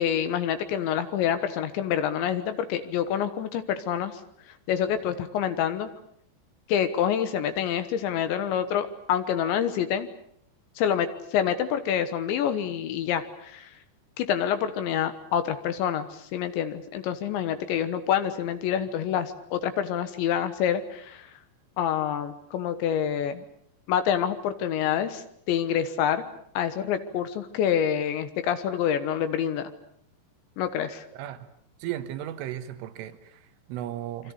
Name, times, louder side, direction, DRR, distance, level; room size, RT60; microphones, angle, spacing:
voice 1, 0.0-4.2 4.7-5.9 6.7-10.1 10.8-13.7 14.2-21.3 21.8-23.4 23.9-26.2 26.5-29.7 30.6-31.1, left 9 dB, 75° left, 10 dB, 3.4 m, -27 dB
voice 2, 31.8-34.3, right 12 dB, 85° right, 11 dB, 3.9 m, -35 dB
27.0 x 24.5 x 6.8 m, 0.66 s
omnidirectional pair, 5.6 m